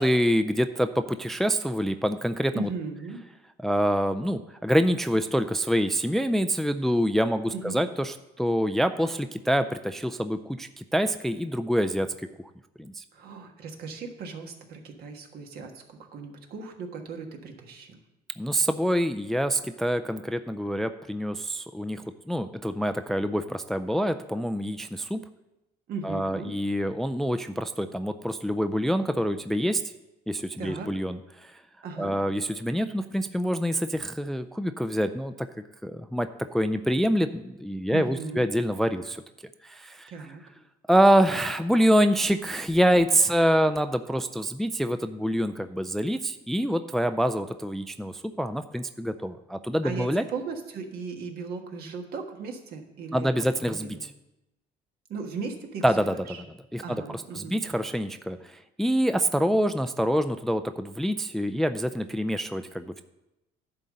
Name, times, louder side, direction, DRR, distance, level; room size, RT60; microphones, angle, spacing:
voice 1, 0.0-2.7 3.6-12.1 12.8-13.0 18.4-25.2 26.0-29.8 30.3-31.5 32.0-35.3 35.8-39.2 39.6-40.1 40.9-50.2 53.1-54.0 55.8-56.1 56.7-56.8 57.4-63.0, equal, ahead, 9 dB, 0.3 m, -26 dB
voice 2, 2.5-3.2 7.5-7.8 13.1-18.0 25.9-26.5 30.6-30.9 31.8-32.1 37.9-38.5 40.1-40.4 49.8-54.0 55.1-56.4 56.8-57.5, right 4 dB, 65° right, 3 dB, 1.5 m, -37 dB
10.5 x 4.0 x 7.5 m, 0.94 s
cardioid pair, 110°, 17 cm